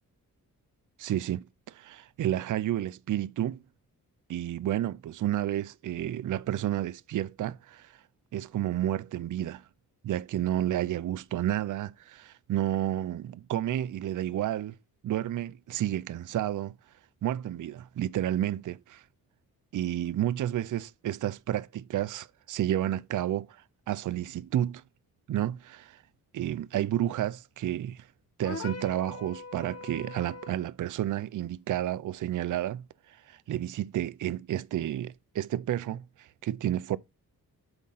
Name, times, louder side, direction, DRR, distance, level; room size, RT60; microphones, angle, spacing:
voice 1, 1.0-3.6 4.3-8.0 8.3-9.6 10.0-14.8 15.0-16.7 17.2-19.0 19.7-24.8 25.3-26.0 26.3-28.1 28.4-37.0, right 12 dB, 60° right, 0.5 m, -31 dB
sound 1, 28.4-30.7, left 4 dB, 45° left, 1.0 m, -41 dB
8.1 x 3.7 x 5.6 m
cardioid pair, 95°, 36 cm